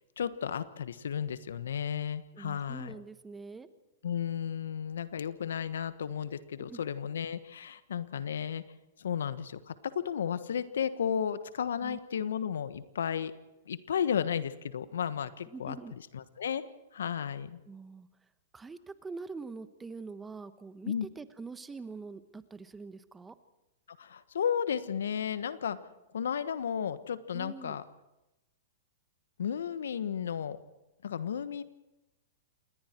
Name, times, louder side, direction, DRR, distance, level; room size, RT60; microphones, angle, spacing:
voice 1, 0.2-3.0 4.0-8.6 9.0-13.3 13.7-15.8 16.1-16.6 16.9-17.6 20.9-21.1 24.0-25.8 26.1-27.8 29.4-30.6 31.0-31.6, left 8 dB, 75° left, 13 dB, 1.3 m, -33 dB
voice 2, 2.3-3.7 6.6-6.8 11.8-12.0 15.5-15.9 17.6-18.1 18.5-23.3 27.3-27.8, right 4 dB, 15° right, 11 dB, 1.3 m, -44 dB
28.0 x 21.0 x 4.6 m, 0.97 s
hypercardioid pair, 110°, 0 cm